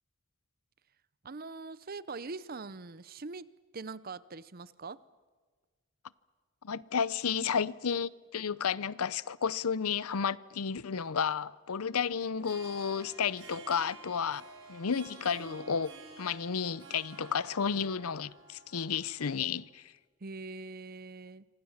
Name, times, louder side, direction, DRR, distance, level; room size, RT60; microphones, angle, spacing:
voice 1, 1.2-5.0 20.2-21.5, right 3 dB, 45° right, 0.7 m, -43 dB
voice 2, 6.6-15.9 16.2-19.9, left 6 dB, 90° left, 0.7 m, -32 dB
Harp, 12.3-19.6, right 3 dB, 60° right, 6.7 m, -51 dB
26.0 x 26.0 x 7.3 m
head